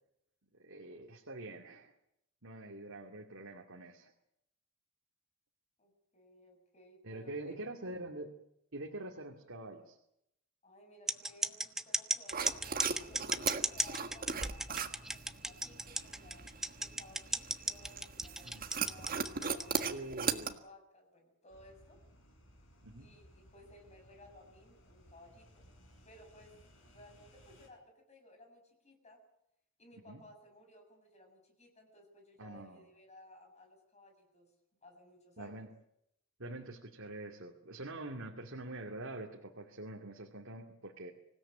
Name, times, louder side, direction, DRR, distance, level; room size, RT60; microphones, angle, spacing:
voice 1, 0.6-1.9 2.4-4.1 7.0-8.3 8.7-10.0 18.4-18.7 19.7-20.6 22.8-23.1 30.1-30.2 32.4-32.9 35.4-35.7 36.4-41.1, right 2 dB, 65° right, 1 dB, 2.5 m, -45 dB
voice 2, 5.8-7.8 10.6-16.4 16.8-22.0 23.0-25.7 26.0-26.5 26.9-29.2 29.8-34.5 34.8-35.6, left 1 dB, 30° left, 4 dB, 6.9 m, -59 dB
sound 1, 11.1-19.8, right 1 dB, ahead, 0.8 m, -34 dB
sound 2, 12.3-20.5, right 5 dB, 40° right, 1.7 m, -39 dB
sound 3, 21.5-27.7, equal, 60° left, 5.5 m, -61 dB
25.5 x 17.0 x 8.9 m, 0.79 s
head